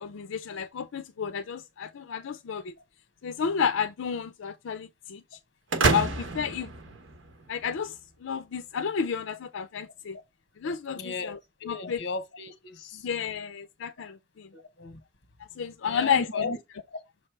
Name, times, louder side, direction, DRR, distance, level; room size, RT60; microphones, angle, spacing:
voice 1, 0.0-2.7 3.2-5.4 5.8-6.7 7.5-10.2 10.6-11.4 11.7-12.0 13.0-14.5 15.6-16.5, left 7 dB, 85° left, 0.5 m, -31 dB
sound 1, 5.7-7.6, right 3 dB, 75° right, 1.2 m, -28 dB
voice 2, 10.9-11.3 11.6-13.1 14.5-15.0 15.8-16.6, left 3 dB, 60° left, 1.1 m, -36 dB
6.5 x 3.2 x 4.5 m
head